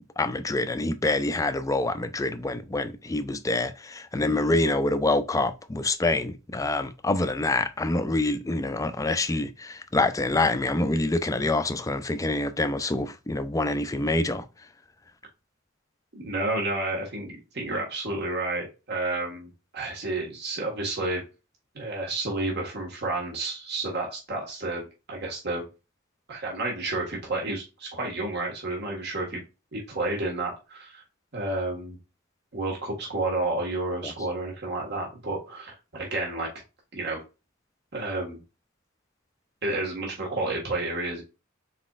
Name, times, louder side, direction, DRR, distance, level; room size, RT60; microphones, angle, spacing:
voice 1, 0.2-14.5 34.0-34.1, left 2 dB, 15° left, 0.4 m, -26 dB
voice 2, 16.1-21.2 21.7-25.6 26.3-29.4 29.7-31.0 31.3-32.0 32.5-36.5 36.9-37.2 37.9-38.4 39.6-41.2, right 2 dB, 55° right, 1.6 m, -30 dB
4.2 x 4.0 x 2.4 m
head